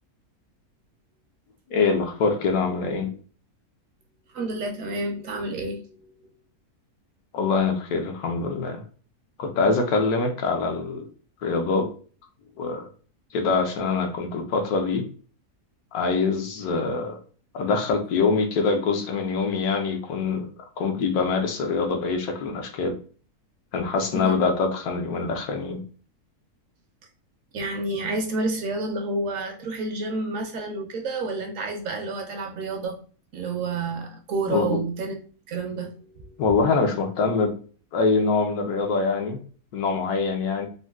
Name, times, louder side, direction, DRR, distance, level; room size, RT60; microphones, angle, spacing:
voice 1, 1.7-3.1 7.3-8.8 9.4-11.1 11.4-11.9 12.6-12.9 13.3-15.0 15.9-17.2 17.5-20.5 20.8-23.0 23.7-25.8 34.5-34.8 36.4-37.5 37.9-39.4 39.7-40.7, left 4 dB, 80° left, 1.1 m, -24 dB
voice 2, 4.3-6.1 24.1-24.4 27.5-33.0 33.3-35.2 35.5-36.4, right 3 dB, 70° right, 0.9 m, -29 dB
3.9 x 2.1 x 2.2 m
omnidirectional pair, 1.6 m